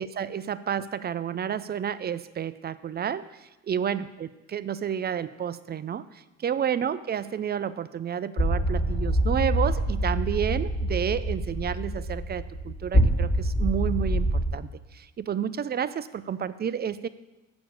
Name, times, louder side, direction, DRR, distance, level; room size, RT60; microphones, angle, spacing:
voice 1, 0.0-17.1, right 8 dB, 35° right, 15 dB, 0.4 m, -30 dB
sound 1, 8.4-14.5, right 1 dB, 25° left, 1.4 m, -25 dB
6.9 x 6.1 x 7.3 m, 1.0 s
cardioid pair, 90°, 30 cm